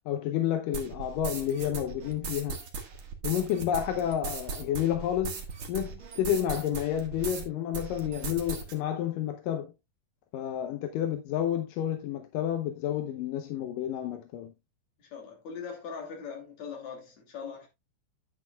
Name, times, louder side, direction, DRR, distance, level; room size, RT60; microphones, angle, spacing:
voice 1, 0.1-2.6 3.2-5.4 5.7-9.7 10.3-14.5, left 10 dB, 85° left, 2.6 m, -30 dB
sound 1, 0.7-7.5 7.7-8.7, right 4 dB, 45° right, 2.2 m, -38 dB
voice 2, 15.0-17.7, left 6 dB, 55° left, 4.0 m, -41 dB
10.5 x 9.2 x 2.3 m
omnidirectional pair, 3.8 m